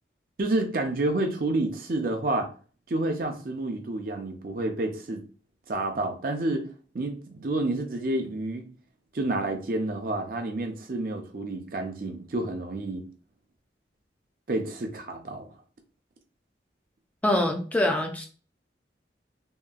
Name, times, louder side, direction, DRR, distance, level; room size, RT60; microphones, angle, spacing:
voice 1, 0.4-2.5 2.9-5.2 5.7-6.7 6.9-8.6 9.1-13.0 14.5-15.5, right 2 dB, 50° right, 0.5 m, -29 dB
voice 2, 17.2-18.3, left 1 dB, 10° left, 0.3 m, -24 dB
2.8 x 2.4 x 2.3 m
head